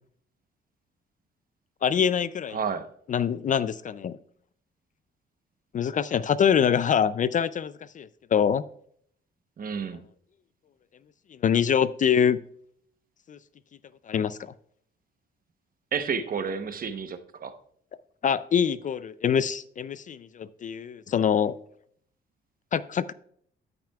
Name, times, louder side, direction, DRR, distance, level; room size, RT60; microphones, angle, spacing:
voice 1, 1.8-2.6 3.1-4.2 5.7-8.6 11.4-12.4 13.3-13.4 14.1-14.5 18.2-21.5 22.7-23.1, left 8 dB, 40° left, 16 dB, 0.4 m, -24 dB
voice 2, 2.5-2.9 9.6-10.1 15.9-17.5, right 6 dB, 45° right, 9 dB, 0.9 m, -31 dB
13.5 x 5.8 x 2.3 m, 0.63 s
cardioid pair, 90°, 20 cm